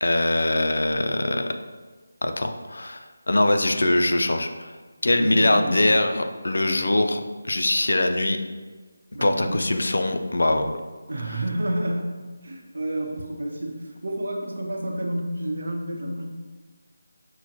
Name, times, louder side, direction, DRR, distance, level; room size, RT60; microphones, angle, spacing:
voice 1, 0.0-1.5 2.2-4.7 5.0-8.4 9.2-10.7, left 1 dB, 75° left, 7 dB, 0.4 m, -22 dB
voice 2, 5.2-6.0 9.1-9.6 11.1-16.2, right 1 dB, 65° right, 0 dB, 0.8 m, -30 dB
5.7 x 2.1 x 2.8 m, 1.4 s
figure-of-eight pair, 175°, 0 cm